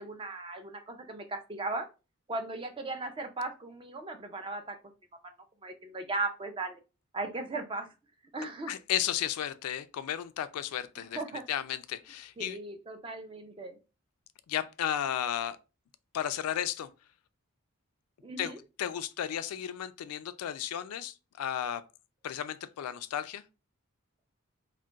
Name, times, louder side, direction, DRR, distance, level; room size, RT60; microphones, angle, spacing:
voice 1, 0.0-1.9 2.3-4.8 5.6-6.8 7.1-7.9 8.3-8.7 11.1-11.4 12.4-13.8 18.2-18.6, right 2 dB, 25° right, 0.4 m, -37 dB
voice 2, 8.7-11.2 11.5-12.6 14.5-15.6 16.1-16.9 18.4-18.5 18.8-21.8 22.2-23.4, left 10 dB, 90° left, 0.3 m, -34 dB
2.3 x 2.2 x 3.8 m
head